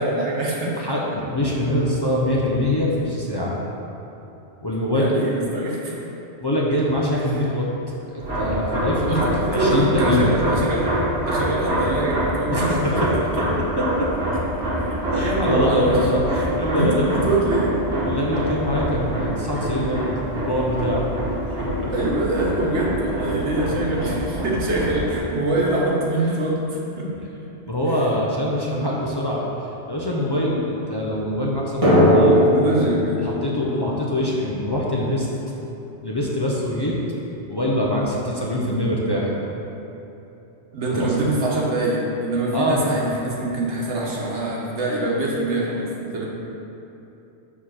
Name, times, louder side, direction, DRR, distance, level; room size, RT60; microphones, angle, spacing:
voice 1, 0.0-0.8 4.9-5.9 7.3-7.4 9.0-11.0 11.3-13.0 14.8-16.0 16.4-17.8 21.9-27.2 27.9-28.0 32.3-33.2 33.7-34.0 38.7-39.3 40.7-46.3, right 2 dB, 80° right, -4 dB, 1.4 m, -25 dB
voice 2, 0.8-3.6 4.6-5.1 6.4-7.7 8.1-9.2 9.5-10.3 12.5-13.1 13.8-14.3 15.1-17.1 18.0-20.0 20.3-21.1 21.6-21.9 27.7-29.4 29.9-32.4 33.2-35.3 36.0-37.0 37.5-39.3 40.9-41.3 42.5-42.8, left 1 dB, 25° left, -4 dB, 0.6 m, -23 dB
sound 1, 8.2-25.2, right 1 dB, 65° right, 1.8 m, -25 dB
Drum, 31.8-35.2, equal, 30° right, 1.6 m, -19 dB
6.6 x 3.7 x 6.3 m, 3.0 s
omnidirectional pair, 1.1 m